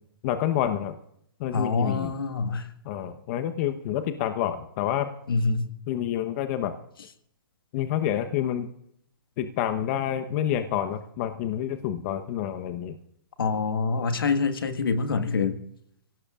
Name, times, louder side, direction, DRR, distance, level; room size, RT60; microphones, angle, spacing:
voice 1, 0.2-0.9 1.4-2.1 2.8-5.1 5.9-6.7 7.7-8.7 9.4-13.0, left 10 dB, 40° left, 8 dB, 1.1 m, -28 dB
voice 2, 1.5-2.7 5.3-5.7 13.4-15.6, left 4 dB, 80° left, 8 dB, 1.7 m, -25 dB
24.5 x 17.5 x 2.5 m, 0.71 s
hypercardioid pair, 130°, 12 cm